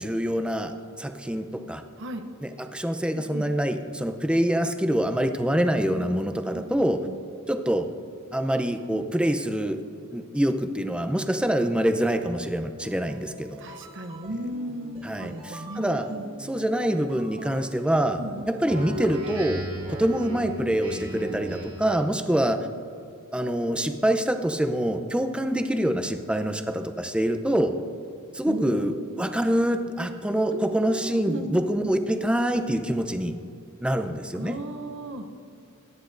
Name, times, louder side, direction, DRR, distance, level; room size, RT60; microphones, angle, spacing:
voice 1, 0.0-1.8 2.4-7.0 7.5-7.9 8.3-9.8 10.1-13.6 15.0-16.1 16.5-18.2 18.5-22.7 23.3-27.8 28.3-33.3 33.8-34.6, right 1 dB, 5° right, 8 dB, 0.6 m, -25 dB
voice 2, 3.2-3.5 5.9-6.2 6.5-6.7 7.1-7.2 13.6-16.3 18.2-18.5 28.4-29.0 30.5-31.9 34.3-35.3, right 1 dB, 60° right, 7 dB, 0.8 m, -36 dB
sound 1, 12.8-19.6, equal, 25° right, 1.6 m, -46 dB
Speech synthesizer, 18.7-22.0, right 1 dB, 80° right, 2.5 m, -35 dB
22.5 x 10.0 x 2.6 m, 2.5 s
head